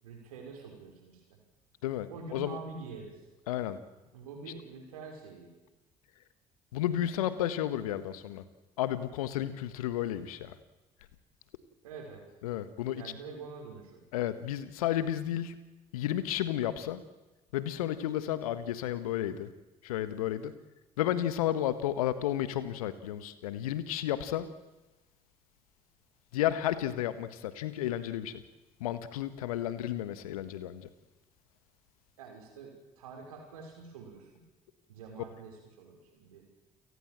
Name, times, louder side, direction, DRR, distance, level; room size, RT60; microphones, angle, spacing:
voice 1, 0.0-1.4 2.1-3.2 4.1-5.5 11.8-12.3 12.9-14.0 32.2-34.4 34.9-36.5, right 4 dB, 80° right, 3 dB, 5.8 m, -46 dB
voice 2, 1.8-2.6 3.5-3.8 6.7-8.4 8.8-10.5 12.4-13.1 14.1-15.5 15.9-17.0 17.5-19.5 19.8-20.5 21.0-24.5 26.3-28.4 28.8-30.9, left 12 dB, 80° left, 13 dB, 1.6 m, -32 dB
29.5 x 18.5 x 7.7 m, 1.1 s
figure-of-eight pair, 50°, 18 cm